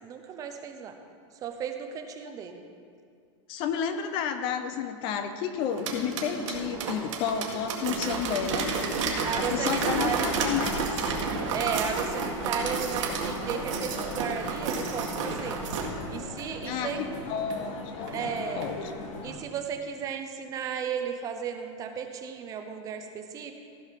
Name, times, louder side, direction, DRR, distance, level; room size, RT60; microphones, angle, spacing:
voice 1, 0.0-1.0 1.4-2.6 9.2-10.3 11.5-15.6 16.1-17.0 18.1-18.7 19.2-23.5, right 7 dB, 20° right, 6 dB, 0.6 m, -34 dB
voice 2, 3.5-8.8 9.3-11.1 16.6-18.1 18.6-18.9, left 7 dB, 30° left, 9 dB, 0.5 m, -31 dB
sound 1, 5.6-15.9 16.4-16.5 16.9-17.0 17.5-17.6 18.1-18.2 18.6-18.7, right 4 dB, 70° right, 1.8 m, -31 dB
sound 2, 9.3-19.4, left 2 dB, 85° left, 1.9 m, -39 dB
15.0 x 5.4 x 5.7 m, 2.2 s
supercardioid pair, 165°, 16 cm